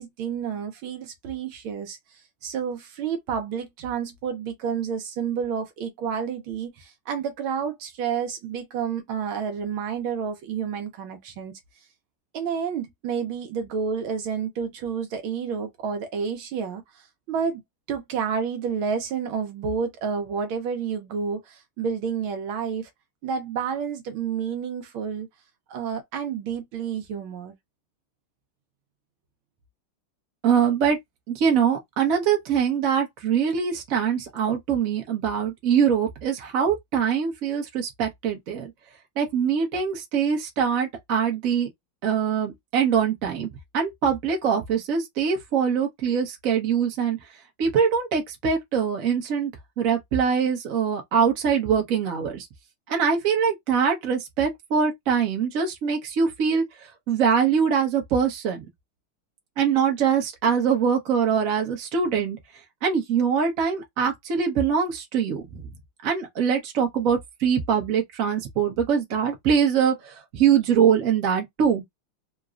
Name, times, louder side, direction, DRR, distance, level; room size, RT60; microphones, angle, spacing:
voice 1, 0.0-11.6 12.3-17.6 17.9-22.9 23.2-25.3 25.7-27.5, right 6 dB, 75° right, 1.5 m, -30 dB
voice 2, 30.4-31.0 31.3-38.7 39.2-41.7 42.0-47.2 47.6-49.5 49.8-52.5 52.9-58.7 59.6-62.4 62.8-65.7 66.0-72.0, right 7 dB, 50° right, 1.2 m, -23 dB
4.0 x 2.2 x 2.4 m
omnidirectional pair, 2.3 m